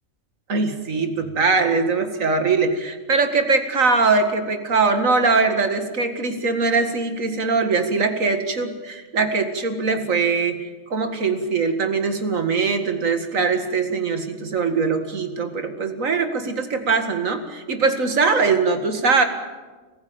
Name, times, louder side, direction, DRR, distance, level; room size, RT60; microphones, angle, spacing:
voice 1, 0.5-10.6 10.9-19.2, right 4 dB, 80° right, 7 dB, 2.3 m, -21 dB
24.5 x 15.5 x 8.7 m, 1.3 s
omnidirectional pair, 1.4 m